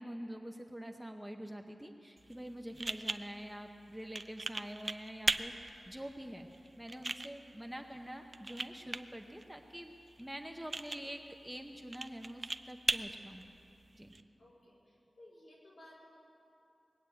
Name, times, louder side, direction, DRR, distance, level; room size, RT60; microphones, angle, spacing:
voice 1, 0.0-6.5 6.8-13.4 13.9-14.1, equal, 5° right, 3 dB, 0.7 m, -46 dB
sound 1, 2.2-14.2, right 2 dB, 35° right, 0.4 m, -41 dB
voice 2, 14.4-16.2, left 1 dB, 65° left, -5 dB, 4.5 m, -58 dB
20.0 x 8.2 x 8.4 m, 2.8 s
wide cardioid pair, 115°, 0 cm